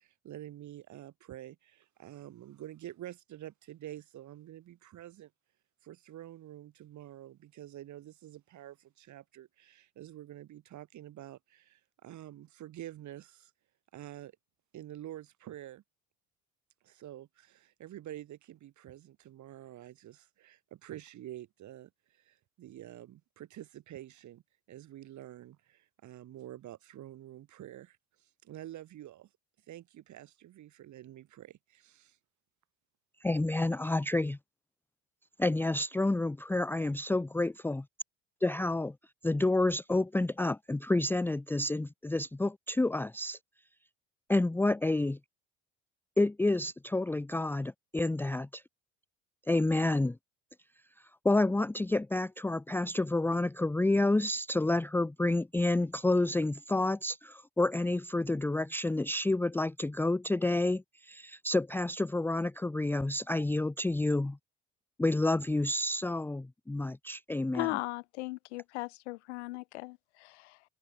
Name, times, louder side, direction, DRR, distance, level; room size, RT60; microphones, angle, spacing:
voice 1, 0.0-5.3 5.8-13.5 13.9-14.3 14.7-15.8 16.8-24.4 24.7-29.3 29.7-32.2, right 13 dB, 60° right, 6.1 m, -48 dB
voice 2, 33.2-34.4 35.4-37.8 38.4-38.9 39.2-43.4 44.3-45.2 46.2-48.6 49.5-50.2 51.2-64.4 65.0-67.7, left 2 dB, 5° left, 0.6 m, -29 dB
voice 3, 67.5-70.6, left 22 dB, 85° left, 3.4 m, -38 dB
hypercardioid pair, 70°, 33 cm